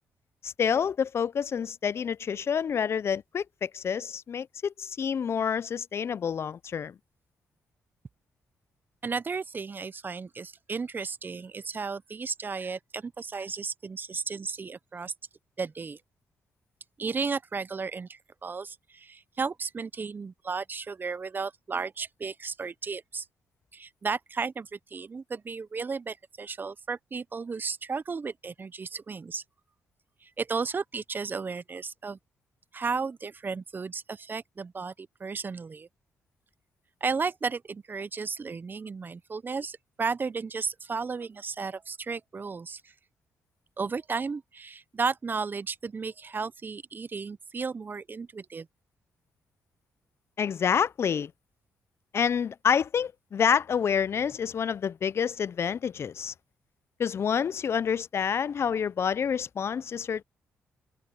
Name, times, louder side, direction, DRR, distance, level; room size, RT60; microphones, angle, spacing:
voice 1, 0.4-6.9 50.4-51.3 52.1-56.3 57.0-60.2, left 7 dB, 55° left, 0.6 m, -28 dB
voice 2, 9.0-15.1 15.6-16.0 17.0-23.2 23.7-29.4 30.2-32.2 32.7-35.9 37.0-42.9 43.8-48.7, right 5 dB, 40° right, 0.8 m, -34 dB
supercardioid pair, 60°, 5 cm